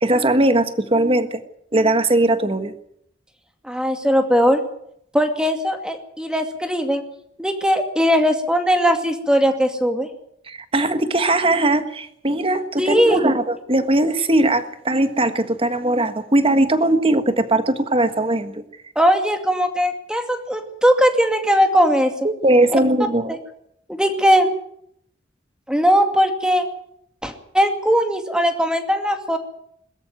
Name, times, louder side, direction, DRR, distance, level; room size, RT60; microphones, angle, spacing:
voice 1, 0.0-1.4 1.7-2.7 10.5-18.6 22.2-23.4, right 1 dB, 30° right, 9 dB, 1.6 m, -19 dB
voice 2, 3.6-4.6 5.1-7.0 7.4-10.1 12.8-13.3 19.0-22.3 22.7-22.8 23.9-24.5 25.7-26.6 27.2-29.4, equal, 5° right, 6 dB, 2.4 m, -19 dB
22.0 x 14.0 x 9.3 m, 0.72 s
head